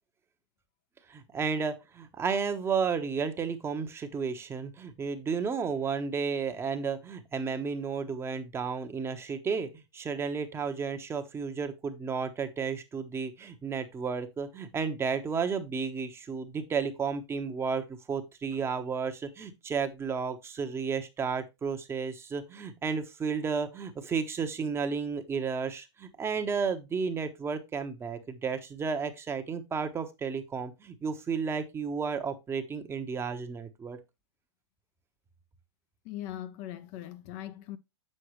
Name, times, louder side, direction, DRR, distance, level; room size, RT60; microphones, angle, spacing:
voice 1, 1.1-34.0, right 5 dB, 15° right, 1.0 m, -32 dB
voice 2, 36.0-37.8, left 12 dB, 45° left, 0.6 m, -40 dB
7.7 x 6.5 x 3.1 m
hypercardioid pair, 110°, 14 cm